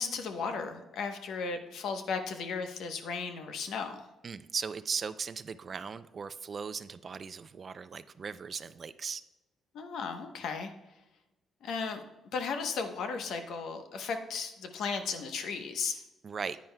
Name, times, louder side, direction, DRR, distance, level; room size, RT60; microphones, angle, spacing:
voice 1, 0.0-4.1 9.7-10.7 11.6-12.0 12.3-16.0, left 5 dB, 75° left, 6 dB, 0.9 m, -35 dB
voice 2, 4.2-9.2 16.2-16.6, right 5 dB, 45° right, 14 dB, 0.4 m, -38 dB
10.0 x 9.3 x 2.2 m, 1.0 s
cardioid pair, 90°, 0 cm